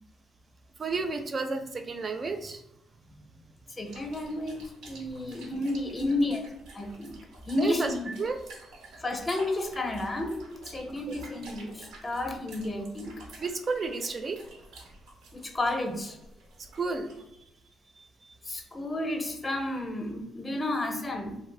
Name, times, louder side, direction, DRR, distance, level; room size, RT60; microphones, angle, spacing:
voice 1, 0.8-2.6 6.0-6.1 7.6-7.9 8.2-8.4 10.9-11.2 13.4-14.4 16.8-17.2, right 4 dB, 40° right, 6 dB, 0.4 m, -31 dB
voice 2, 3.7-6.4 6.7-7.1 7.5-8.1 9.0-13.1 15.3-16.2 18.4-21.4, left 1 dB, 25° left, 4 dB, 0.5 m, -32 dB
sound 1, 3.9-17.4, right 2 dB, 90° right, 0.6 m, -50 dB
2.5 x 2.0 x 3.2 m, 0.83 s
cardioid pair, 90°, 0 cm